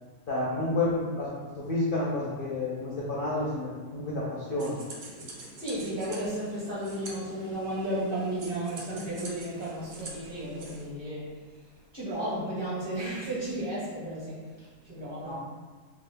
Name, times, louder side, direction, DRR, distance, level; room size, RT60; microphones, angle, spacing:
voice 1, 0.3-4.8 15.2-15.3, left 2 dB, 60° left, -6 dB, 0.5 m, -30 dB
sound 1, 4.6-10.9, right 2 dB, 80° right, 0.4 m, -45 dB
voice 2, 5.6-11.4 11.9-15.3, right 1 dB, 45° right, -8 dB, 0.9 m, -33 dB
2.7 x 2.4 x 3.4 m, 1.4 s
omnidirectional pair, 1.5 m